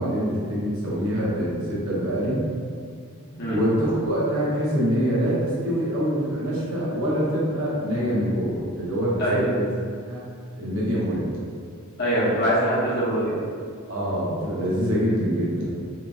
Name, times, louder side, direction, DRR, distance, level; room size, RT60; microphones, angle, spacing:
voice 1, 0.0-2.4 3.4-9.7 10.1-10.2 10.6-11.3 13.2-13.3 13.9-15.7, equal, 65° right, -7 dB, 0.8 m, -25 dB
voice 2, 12.0-13.3, equal, 45° left, -9 dB, 0.8 m, -23 dB
2.9 x 2.5 x 2.3 m, 2.1 s
head